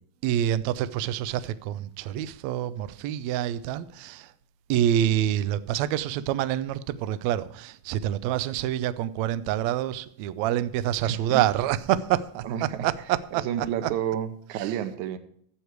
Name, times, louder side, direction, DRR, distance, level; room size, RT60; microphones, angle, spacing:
voice 1, 0.2-4.3 4.7-13.9 14.6-14.7, right 11 dB, 90° right, 1.6 m, -27 dB
voice 2, 11.0-11.4 12.4-12.9 13.4-15.2, right 10 dB, 70° right, 2.2 m, -30 dB
13.5 x 8.1 x 4.6 m
omnidirectional pair, 3.9 m